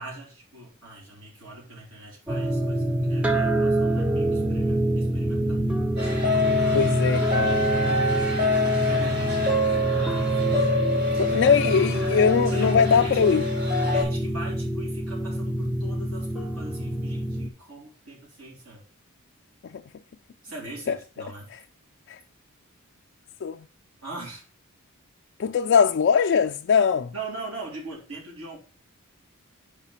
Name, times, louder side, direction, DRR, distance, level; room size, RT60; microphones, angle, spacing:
voice 1, 0.0-5.6 6.5-7.0 7.8-11.2 12.5-13.2 13.9-18.8 20.4-21.5 24.0-24.4 27.1-28.6, right 2 dB, 90° right, 3.7 m, -41 dB
sound 1, 2.3-17.5, right 1 dB, 5° right, 0.5 m, -26 dB
sound 2, 6.0-14.0, left 2 dB, 50° right, 2.9 m, -26 dB
voice 2, 6.7-7.6 11.2-13.4 22.1-22.2 23.4-23.6 25.4-27.1, left 6 dB, 55° left, 0.3 m, -21 dB
5.3 x 4.9 x 5.6 m
head